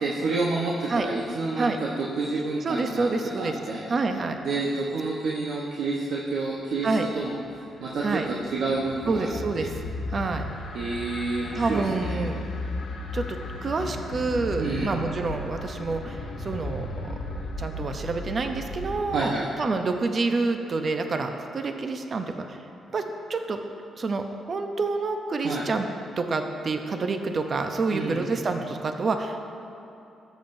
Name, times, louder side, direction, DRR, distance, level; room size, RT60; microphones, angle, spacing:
voice 1, 0.0-3.1 3.4-3.9 4.4-6.9 7.1-7.4 7.8-9.3 9.6-9.7 10.7-12.2 14.6-14.9 19.1-19.5 25.4-25.6 27.9-28.3, right 3 dB, 80° right, -3 dB, 0.9 m, -29 dB
voice 2, 2.6-3.5 3.9-4.4 6.8-7.1 8.0-8.3 9.1-9.7 10.1-10.5 11.5-12.4 13.1-16.9 17.6-19.3 19.6-22.7 22.9-23.0 23.3-23.6 24.0-25.9 26.2-29.4, right 3 dB, 45° right, 6 dB, 0.6 m, -28 dB
sound 1, 7.4-19.2, left 2 dB, 75° left, 1.1 m, -35 dB
14.0 x 7.2 x 2.6 m, 2.9 s
cardioid pair, 85°, 0 cm